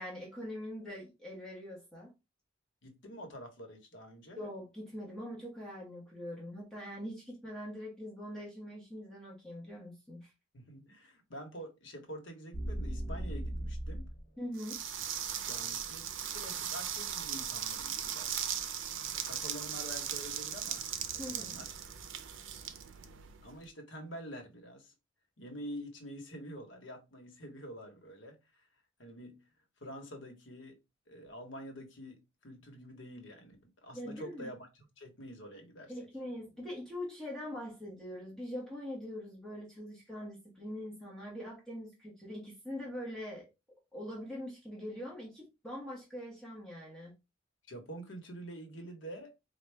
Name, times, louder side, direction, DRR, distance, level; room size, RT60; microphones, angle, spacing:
voice 1, 0.0-2.1 4.4-10.3 14.4-14.8 21.2-21.6 33.9-34.5 35.9-43.5 43.9-47.1, left 1 dB, 5° left, 1.1 m, -43 dB
voice 2, 2.8-4.4 10.5-14.1 15.5-16.1 16.3-18.4 19.1-20.8 21.1-21.7 23.4-24.9 25.4-28.6 29.0-29.4 29.8-30.8 31.1-34.7 35.0-35.9 47.7-49.5, equal, 75° left, 1.1 m, -47 dB
sound 1, 12.5-14.2, right 1 dB, 60° left, 0.8 m, -37 dB
sound 2, 14.6-23.6, right 9 dB, 85° right, 0.5 m, -38 dB
4.5 x 2.2 x 3.2 m
head